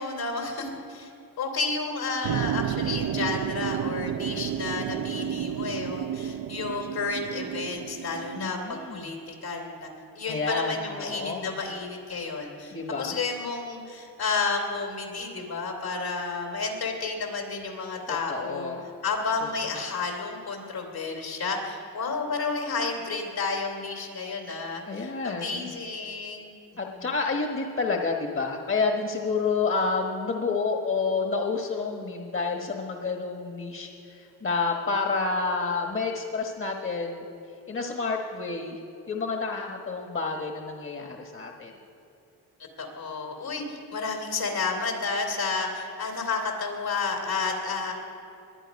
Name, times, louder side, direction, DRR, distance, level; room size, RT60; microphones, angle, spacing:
voice 1, 0.0-9.9 10.1-18.7 19.0-26.5 26.9-27.1 42.8-47.9, left 4 dB, 70° left, 2 dB, 3.1 m, -31 dB
sound 1, 2.2-8.5, right 10 dB, 55° right, 0.5 m, -31 dB
voice 2, 8.4-9.2 10.3-11.6 12.7-13.2 18.1-18.9 24.9-25.7 26.8-37.2 37.7-38.8 39.1-41.7, left 4 dB, 35° left, 2 dB, 1.3 m, -29 dB
21.5 x 9.0 x 5.3 m, 2.8 s
cardioid pair, 80°, 39 cm